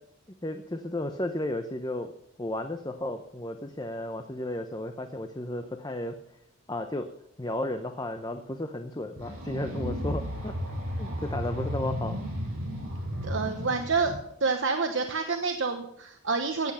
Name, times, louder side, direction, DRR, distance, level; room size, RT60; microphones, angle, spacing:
voice 1, 0.4-2.1 2.4-6.1 6.7-7.1 7.4-10.5 11.0-12.2, left 1 dB, 20° left, 6 dB, 0.7 m, -33 dB
sound 1, 9.2-14.2, equal, 80° right, 6.7 m, -34 dB
voice 2, 13.2-14.1 14.4-16.7, right 4 dB, 55° right, 5 dB, 1.0 m, -28 dB
16.5 x 8.2 x 5.6 m, 0.76 s
head